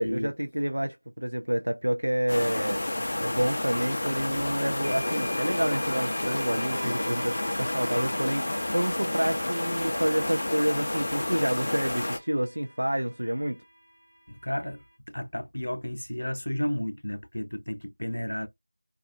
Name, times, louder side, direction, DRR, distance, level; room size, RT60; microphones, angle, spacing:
voice 1, 0.0-2.8 3.2-13.6, equal, 80° right, 0.4 m, -28 dB
sound 1, 2.3-12.2, left 1 dB, 30° left, 0.4 m, -30 dB
sound 2, 3.9-4.0 4.8-12.9, equal, 10° right, 0.8 m, -43 dB
voice 2, 14.3-18.5, left 1 dB, 80° left, 0.6 m, -32 dB
2.4 x 2.3 x 2.4 m
figure-of-eight pair, 180°, 0 cm